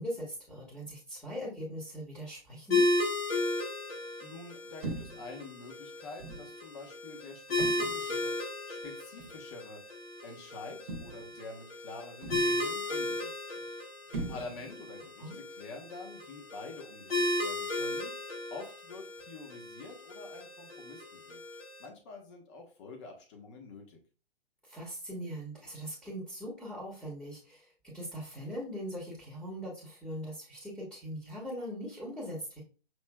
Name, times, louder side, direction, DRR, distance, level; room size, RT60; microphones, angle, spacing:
voice 1, 0.0-2.9 15.2-15.4 24.6-32.6, equal, ahead, -6 dB, 1.3 m, -41 dB
sound 1, 2.7-21.9, left 2 dB, 70° left, 1.8 m, -35 dB
voice 2, 4.2-9.8 10.2-13.7 14.3-18.1 18.5-21.4 21.8-24.0, left 3 dB, 30° left, 2 dB, 1.1 m, -47 dB
sound 2, 4.8-5.3 6.2-6.5 7.6-8.1 9.2-9.4 10.9-11.4 12.2-12.7 14.1-14.8, right 3 dB, 55° right, 0.9 m, -40 dB
6.2 x 3.1 x 2.2 m, 0.36 s
figure-of-eight pair, 125°, 30 cm